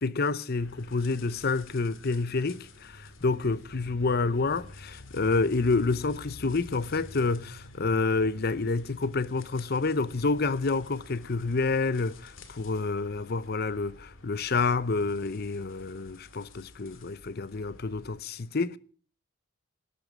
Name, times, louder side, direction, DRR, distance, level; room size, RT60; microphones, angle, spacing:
voice 1, 0.0-18.8, left 3 dB, 45° left, 0.7 m, -28 dB
sound 1, 0.6-18.2, left 2 dB, 65° left, 2.2 m, -49 dB
18.5 x 10.5 x 6.1 m
head